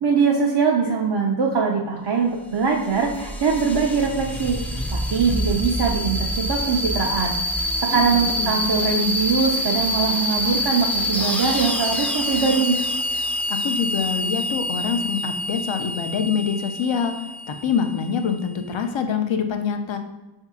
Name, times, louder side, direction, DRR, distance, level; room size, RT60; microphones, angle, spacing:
voice 1, 0.0-4.6 4.9-7.4 7.9-12.8, right 5 dB, 55° right, -1 dB, 0.6 m, -22 dB
sound 1, 2.3-18.7, left 1 dB, 5° left, 0.4 m, -26 dB
voice 2, 7.9-8.6 13.5-17.1 17.5-20.0, left 7 dB, 70° left, 6 dB, 0.6 m, -25 dB
3.9 x 2.7 x 3.6 m, 1.1 s
wide cardioid pair, 50°, 49 cm